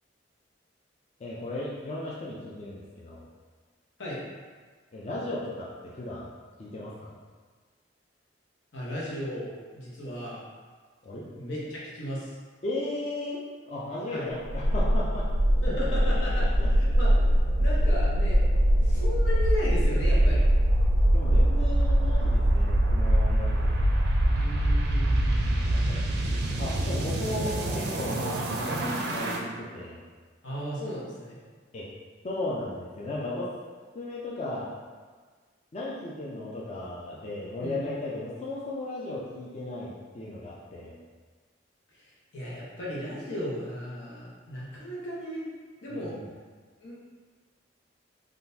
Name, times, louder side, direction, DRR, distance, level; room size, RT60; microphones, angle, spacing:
voice 1, 1.2-3.3 4.9-6.3 6.6-7.1 11.0-11.3 12.6-13.4 13.7-15.3 16.4-16.7 21.1-23.8 26.6-30.0 31.7-31.9 32.2-33.5 33.9-34.7 35.7-41.0 45.9-46.2, left 2 dB, 35° left, -6 dB, 0.4 m, -36 dB
voice 2, 8.7-10.4 11.4-12.4 14.1-14.3 15.6-18.4 18.8-20.4 24.3-26.1 30.4-31.4 37.6-37.8 41.9-45.5 45.8-46.1 46.8-47.0, equal, 85° left, -6 dB, 0.9 m, -36 dB
sound 1, 14.4-29.4, right 1 dB, 60° right, 0.4 m, -23 dB
3.7 x 2.4 x 2.6 m, 1.5 s
head